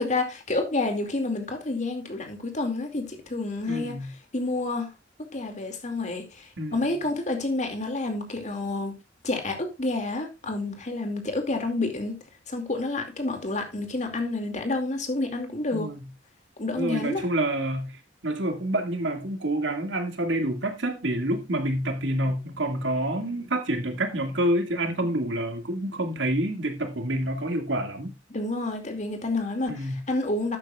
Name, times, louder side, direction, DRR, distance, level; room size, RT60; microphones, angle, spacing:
voice 1, 0.0-4.0 4.3-4.9 5.3-8.9 9.2-12.2 12.5-15.9 16.6-17.2 28.3-30.6, left 2 dB, 40° left, 2.6 m, -29 dB
voice 2, 3.7-4.1 6.6-7.0 15.7-16.1 16.8-28.1 29.7-30.0, right 1 dB, 85° right, 2.3 m, -28 dB
12.0 x 9.0 x 2.5 m
head